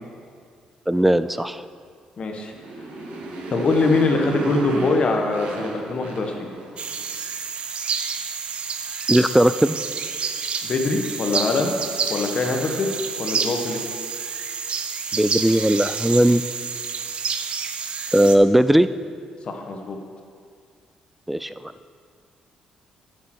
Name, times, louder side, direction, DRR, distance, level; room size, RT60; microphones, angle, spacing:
voice 1, 0.9-1.6 9.1-9.8 15.1-16.4 18.1-18.9 21.3-21.7, right 1 dB, 5° right, 13 dB, 0.3 m, -18 dB
voice 2, 2.2-2.5 3.5-6.5 10.6-11.7 12.1-12.9 13.2-13.8 19.5-20.0, left 3 dB, 50° left, 3 dB, 1.3 m, -23 dB
Motorcycle, 2.4-7.0, right 2 dB, 85° right, 1.5 m, -33 dB
sound 1, 6.8-18.4, right 5 dB, 50° right, 0.7 m, -29 dB
7.6 x 6.8 x 6.2 m, 2.1 s
cardioid pair, 80°, 2 cm